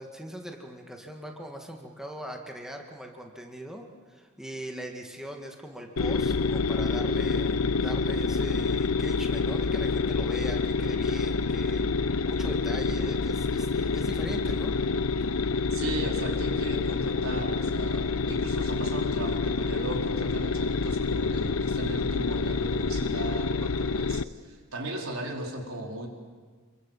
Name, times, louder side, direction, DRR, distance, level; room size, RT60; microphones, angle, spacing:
voice 1, 0.0-11.8 12.3-14.7, right 1 dB, 5° right, 2 dB, 2.1 m, -40 dB
sound 1, 6.0-24.2, left 4 dB, 90° left, 0.7 m, -27 dB
voice 2, 15.7-26.1, right 1 dB, 85° right, 1 dB, 4.5 m, -37 dB
27.5 x 23.0 x 7.5 m, 1.5 s
head